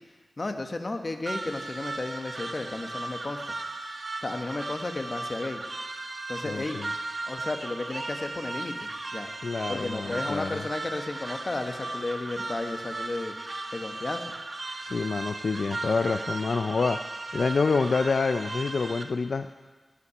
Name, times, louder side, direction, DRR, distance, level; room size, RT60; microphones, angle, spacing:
voice 1, 0.4-3.5 4.2-5.6 6.3-6.8 7.3-9.3 9.7-13.3 13.7-14.2, left 2 dB, 40° left, 6 dB, 1.1 m, -33 dB
sound 1, 1.3-19.0, right 2 dB, 45° right, 1.0 m, -36 dB
voice 2, 6.4-6.9 9.4-10.6 14.8-17.0 17.3-19.6, left 4 dB, 70° left, 9 dB, 0.4 m, -27 dB
15.0 x 5.9 x 9.5 m, 1.3 s
wide cardioid pair, 105°, 0 cm